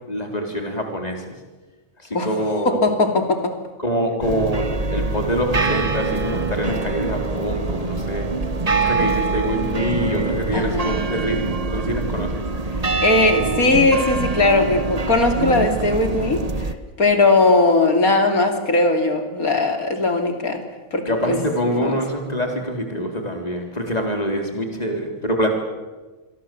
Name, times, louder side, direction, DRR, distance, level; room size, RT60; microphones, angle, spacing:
voice 1, 0.1-1.3 2.0-2.9 3.8-8.3 8.7-12.4 21.1-25.5, equal, 25° left, 3 dB, 4.1 m, -25 dB
voice 2, 2.6-3.5 10.5-10.9 13.0-16.7 17.0-20.6 20.9-21.3 21.8-22.0, left 2 dB, 80° left, 5 dB, 3.3 m, -19 dB
sound 1, 4.2-16.7, right 3 dB, 30° right, 1.3 m, -24 dB
27.0 x 23.0 x 7.8 m, 1.2 s
omnidirectional pair, 1.5 m